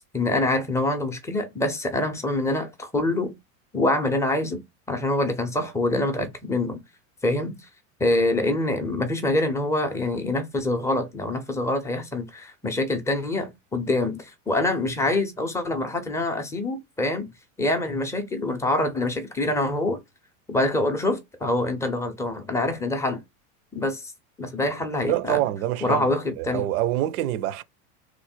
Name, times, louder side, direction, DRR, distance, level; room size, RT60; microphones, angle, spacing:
voice 1, 0.1-3.3 3.7-4.6 4.9-6.8 7.2-7.6 8.0-17.3 17.6-20.0 20.5-23.2 23.7-24.1 24.4-25.4 25.8-26.6, left 2 dB, 5° left, 0.4 m, -25 dB
voice 2, 25.1-26.1 26.4-27.6, right 14 dB, 80° right, 0.6 m, -25 dB
3.1 x 2.1 x 4.2 m
supercardioid pair, 125°, 43 cm